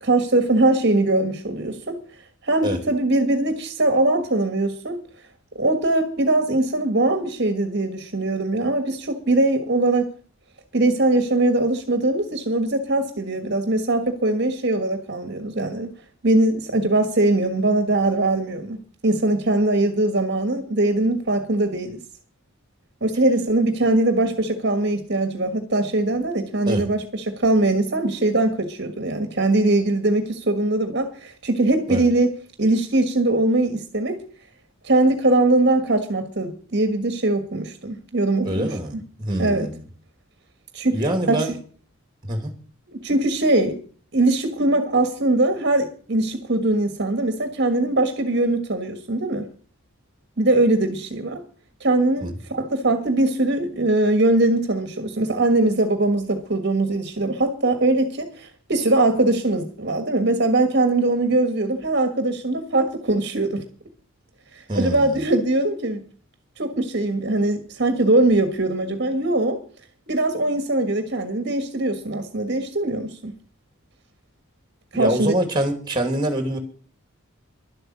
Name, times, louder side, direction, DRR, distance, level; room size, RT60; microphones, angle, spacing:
voice 1, 0.0-2.0 2.4-5.0 5.5-10.1 10.7-15.9 16.2-18.8 19.0-22.0 23.0-32.3 32.6-34.2 34.8-38.7 39.4-39.7 40.7-41.0 41.3-41.5 42.9-43.8 44.1-49.5 50.4-51.4 51.8-63.6 64.5-66.0 66.6-69.6 70.1-73.3 74.9-75.3, right 2 dB, 50° right, 1.5 m, -21 dB
voice 2, 38.4-39.8 40.9-41.5 42.2-42.5 52.2-52.3 64.7-65.2 74.9-76.6, right 1 dB, 20° right, 2.6 m, -25 dB
12.0 x 7.9 x 8.6 m
head